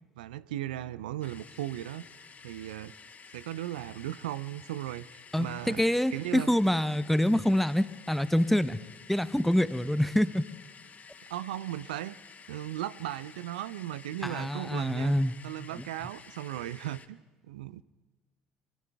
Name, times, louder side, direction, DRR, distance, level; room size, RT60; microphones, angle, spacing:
voice 1, 0.2-2.1 2.4-2.9 3.3-5.8 6.1-6.5 11.3-12.2 12.5-15.1 15.4-17.2 17.4-17.8, right 13 dB, 75° right, 17 dB, 0.4 m, -37 dB
sound 1, 1.2-17.1, left 5 dB, 35° left, 1.2 m, -52 dB
voice 2, 5.3-8.8 9.1-10.4 14.2-15.4, left 1 dB, 5° left, 14 dB, 0.7 m, -26 dB
24.5 x 24.0 x 2.3 m, 1.2 s
figure-of-eight pair, 55°, 5 cm